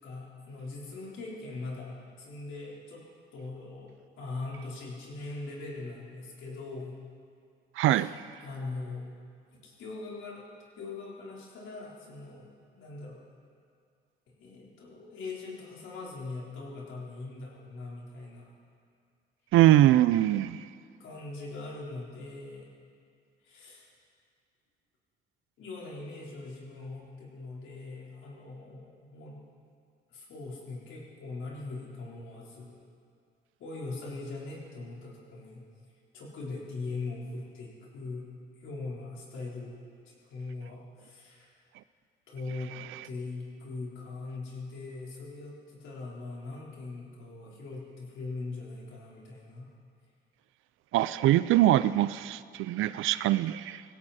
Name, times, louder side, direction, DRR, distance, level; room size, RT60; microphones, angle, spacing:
voice 1, 0.0-3.0 3.3-7.0 7.9-8.1 8.4-9.1 9.6-10.4 10.8-13.2 14.4-18.5 21.0-22.7 23.4-23.9 25.6-29.4 30.1-32.8 33.6-35.6 36.1-38.3 38.6-41.6 42.3-42.8 43.0-49.7, left 3 dB, 80° left, -4 dB, 4.2 m, -41 dB
voice 2, 7.8-8.1 19.5-20.7 50.9-53.8, right 14 dB, 85° right, 16 dB, 0.5 m, -23 dB
20.0 x 16.5 x 4.3 m, 2.3 s
cardioid pair, 90°, 20 cm